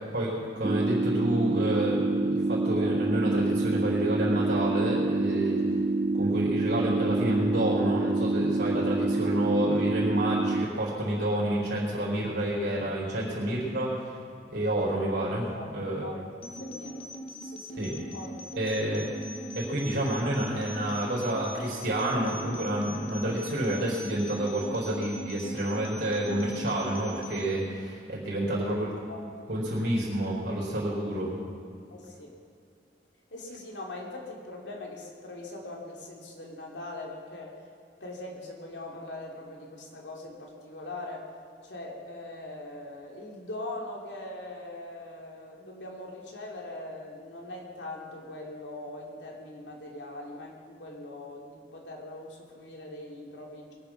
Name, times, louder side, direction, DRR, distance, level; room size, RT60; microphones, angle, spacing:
voice 1, 0.0-5.6 6.1-14.0 14.5-16.1 17.8-18.0 18.6-19.1 19.5-28.9 29.5-31.3, right 1 dB, 65° right, -5 dB, 4.2 m, -29 dB
sound 1, 0.6-10.6, right 2 dB, 35° right, 0.3 m, -27 dB
sound 2, 16.4-27.4, equal, 30° left, 1.3 m, -41 dB
voice 2, 16.6-17.8 18.1-19.0 28.3-28.6 29.1-29.2 31.9-32.3 33.3-37.6 38.0-41.3 41.6-53.7, left 2 dB, 85° left, -1 dB, 2.9 m, -41 dB
22.0 x 9.0 x 6.0 m, 2.4 s
head